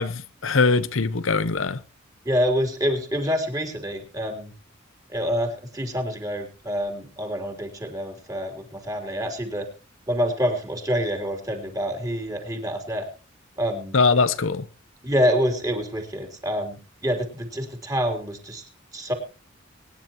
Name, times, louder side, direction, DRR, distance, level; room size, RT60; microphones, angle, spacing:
voice 1, 0.0-1.8 13.9-14.6, left 4 dB, 75° left, 0.9 m, -22 dB
voice 2, 2.2-4.5 5.1-9.7 10.1-13.1 13.6-13.9 15.0-18.7 18.9-19.1, equal, 20° right, 3.4 m, -27 dB
24.0 x 10.5 x 3.0 m
head